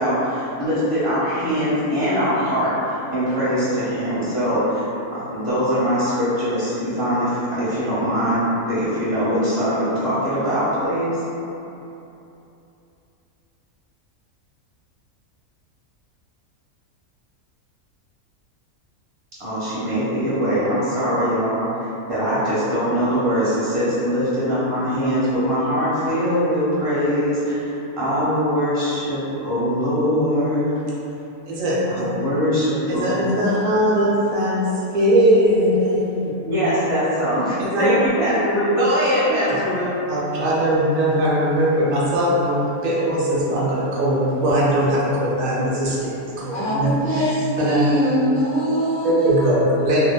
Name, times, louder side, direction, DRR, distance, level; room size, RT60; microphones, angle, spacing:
voice 1, 0.0-11.2 19.4-30.8 31.9-33.1 36.4-37.5 37.8-39.9, equal, 25° right, -11 dB, 0.8 m, -22 dB
voice 2, 31.5-32.0 32.9-36.3 37.7-38.0 39.5-39.6 40.1-47.9 49.0-50.0, equal, 75° right, -6 dB, 0.9 m, -20 dB
voice 3, 46.5-49.6, equal, 70° left, -10 dB, 0.5 m, -22 dB
3.0 x 2.1 x 2.2 m, 2.9 s
omnidirectional pair, 1.5 m